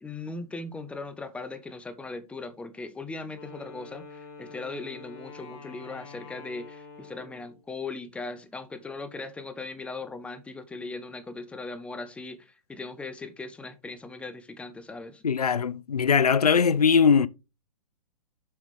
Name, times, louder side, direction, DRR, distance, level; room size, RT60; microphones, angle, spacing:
voice 1, 0.0-15.2, left 3 dB, 5° left, 0.7 m, -39 dB
Wind instrument woodwind instrument, 3.3-7.6, left 4 dB, 45° left, 2.3 m, -46 dB
voice 2, 15.2-17.3, left 6 dB, 85° left, 0.5 m, -21 dB
7.5 x 4.9 x 3.6 m
figure-of-eight pair, 120°, 19 cm